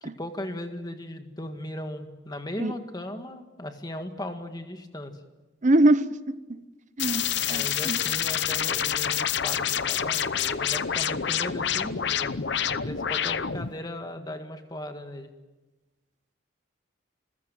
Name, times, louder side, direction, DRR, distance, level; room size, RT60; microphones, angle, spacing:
voice 1, 0.0-5.2 7.5-12.4 12.7-15.3, left 1 dB, 20° left, 6 dB, 1.8 m, -37 dB
voice 2, 5.6-6.4 7.0-8.0, right 1 dB, 40° right, 14 dB, 0.8 m, -23 dB
sound 1, 7.0-13.7, left 9 dB, 60° left, 0.8 m, -27 dB
27.5 x 15.5 x 9.2 m, 1.2 s
head